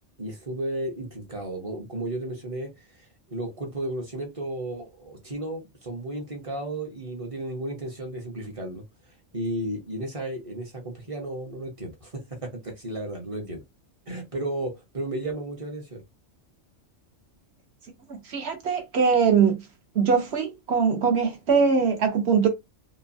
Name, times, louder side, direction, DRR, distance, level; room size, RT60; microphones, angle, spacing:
voice 1, 0.2-2.7 3.3-8.8 9.3-13.6 14.1-16.0, right 1 dB, 30° right, 0.8 m, -33 dB
voice 2, 18.1-19.6 19.9-22.5, right 6 dB, 60° right, 1.1 m, -22 dB
2.9 x 2.2 x 2.6 m
omnidirectional pair, 1.3 m